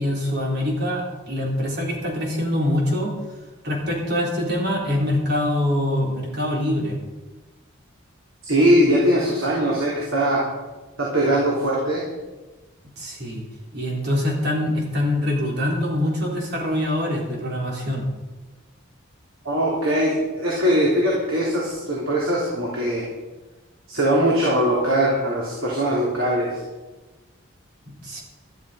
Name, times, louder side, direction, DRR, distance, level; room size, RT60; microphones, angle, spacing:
voice 1, 0.0-3.1 3.6-7.0 13.0-13.4 13.7-18.1 27.9-28.2, left 1 dB, 50° right, -2 dB, 3.8 m, -24 dB
voice 2, 8.4-10.4 11.0-12.0 19.4-23.1 23.9-26.6, equal, 75° right, -5 dB, 3.4 m, -21 dB
13.0 x 12.5 x 5.1 m, 1.2 s
head